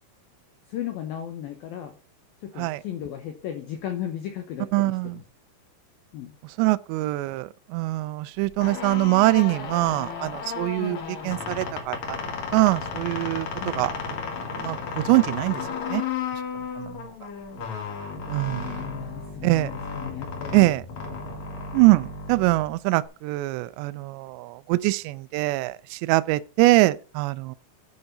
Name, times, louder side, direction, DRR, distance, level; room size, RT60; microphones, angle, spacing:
voice 1, 0.7-1.9 2.4-5.2 6.1-6.3 10.8-11.1 13.6-13.8 18.5-20.8, left 10 dB, 85° left, 2.1 m, -35 dB
voice 2, 4.7-5.2 6.6-11.0 11.2-12.2 12.5-13.5 13.8-13.9 14.6-15.6 15.9-16.0 16.8-16.9 18.3-18.7 19.4-19.7 20.5-20.8 21.7-27.6, right 20 dB, 85° right, 2.5 m, -23 dB
sound 1, 8.4-23.1, left 5 dB, 65° left, 1.9 m, -34 dB
11.5 x 4.7 x 5.3 m
omnidirectional pair, 5.6 m